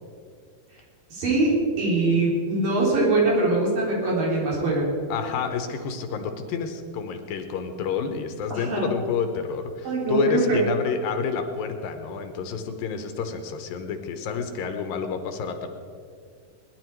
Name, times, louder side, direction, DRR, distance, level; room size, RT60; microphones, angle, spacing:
voice 1, 1.1-1.5 1.8-4.8 8.5-8.9 9.9-10.6, right 2 dB, 70° right, -5 dB, 5.4 m, -22 dB
voice 2, 5.1-15.7, left 6 dB, 80° left, 6 dB, 2.8 m, -29 dB
19.0 x 11.0 x 4.6 m, 2.1 s
omnidirectional pair, 4.1 m